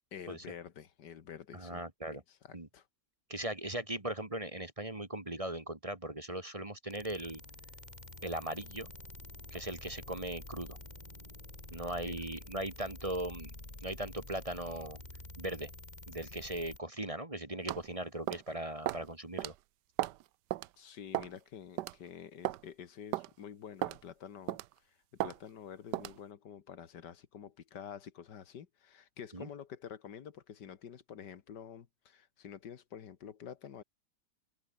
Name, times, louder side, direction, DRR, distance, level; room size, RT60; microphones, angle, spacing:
voice 1, 0.1-1.8 2.1-2.9 12.0-12.2 20.8-24.6 24.9-33.8, left 8 dB, 85° left, 2.0 m, -48 dB
voice 2, 1.5-2.2 2.5-2.7 3.3-7.4 8.2-8.9 9.5-10.8 11.7-13.5 13.8-15.0 15.4-15.7 16.1-19.5 29.3-29.5, right 1 dB, 20° right, 1.8 m, -39 dB
sound 1, 6.9-16.8, left 2 dB, 25° left, 3.7 m, -49 dB
sound 2, 17.7-17.9 18.3-18.5 18.9-19.1 19.4-19.5 20.0-20.2 20.5-20.7 21.1-21.4 21.8-21.9 22.4-22.6 23.1-23.3 23.8-24.0 24.5-24.7 25.2-25.4 25.9-26.2, right 15 dB, 85° right, 1.3 m, -34 dB
omnidirectional pair, 1.8 m